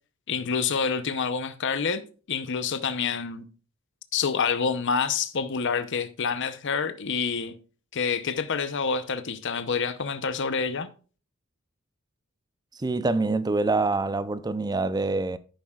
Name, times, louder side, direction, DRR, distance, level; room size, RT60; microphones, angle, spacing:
voice 1, 0.3-2.0 2.3-3.5 4.1-7.5 7.9-10.9, left 5 dB, 60° left, 0.8 m, -27 dB
voice 2, 12.8-15.4, right 3 dB, 20° right, 0.5 m, -25 dB
11.0 x 9.2 x 2.4 m
head